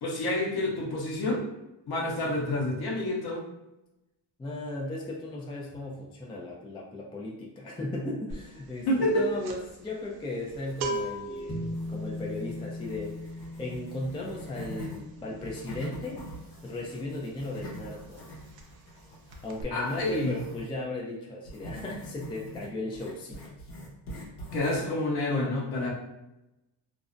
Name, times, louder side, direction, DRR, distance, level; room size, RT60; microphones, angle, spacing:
voice 1, 0.0-1.4 1.9-3.4 8.9-9.3 19.7-20.4 24.5-25.9, left 1 dB, 50° left, -2 dB, 0.8 m, -28 dB
voice 2, 4.4-13.3 13.6-16.2 16.6-18.2 19.4-23.4, left 2 dB, 10° left, -2 dB, 0.3 m, -36 dB
sound 1, 8.3-8.6 8.8-17.4 17.7-17.9 18.2-19.0 19.3-19.6, right 2 dB, 50° right, 0.5 m, -39 dB
sound 2, 10.5-11.3 11.6-15.0 15.4-20.7 21.4-24.9, equal, 80° left, 1.0 m, -44 dB
sound 3, 11.5-18.1, left 1 dB, 35° left, 1.2 m, -41 dB
2.5 x 2.0 x 2.5 m, 0.94 s
supercardioid pair, 70°, 49 cm